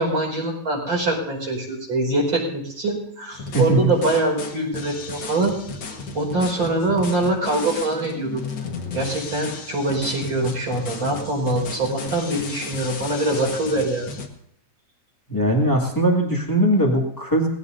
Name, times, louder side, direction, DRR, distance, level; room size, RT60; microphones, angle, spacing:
voice 1, 0.0-5.5 6.1-8.4 8.9-14.1, right 2 dB, 30° right, -1 dB, 5.5 m, -23 dB
sound 1, 3.3-14.3, left 4 dB, 75° left, 1.0 m, -34 dB
voice 2, 3.5-3.9 15.3-17.5, right 1 dB, 10° left, -1 dB, 1.1 m, -20 dB
21.5 x 16.5 x 2.7 m, 0.69 s
omnidirectional pair, 4.7 m